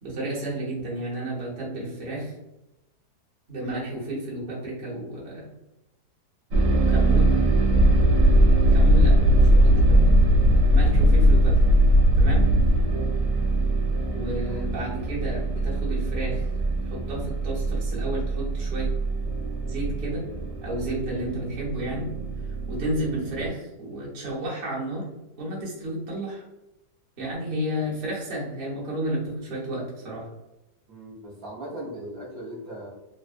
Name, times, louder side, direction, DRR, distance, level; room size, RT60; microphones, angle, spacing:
voice 1, 0.0-2.3 3.5-5.5 6.8-7.4 8.7-10.2 10.7-11.5 12.2-12.4 14.1-16.4 16.9-18.9 19.7-20.2 20.6-22.1 22.7-25.0 25.4-26.4 27.2-30.3, right 1 dB, 40° right, -6 dB, 0.9 m, -31 dB
sound 1, 6.5-23.5, right 3 dB, 85° right, 1.3 m, -24 dB
sound 2, 7.7-12.8, left 1 dB, 80° left, 1.2 m, -18 dB
voice 2, 30.9-32.9, right 1 dB, 65° right, -6 dB, 1.2 m, -38 dB
3.3 x 2.0 x 2.5 m, 0.94 s
omnidirectional pair, 1.8 m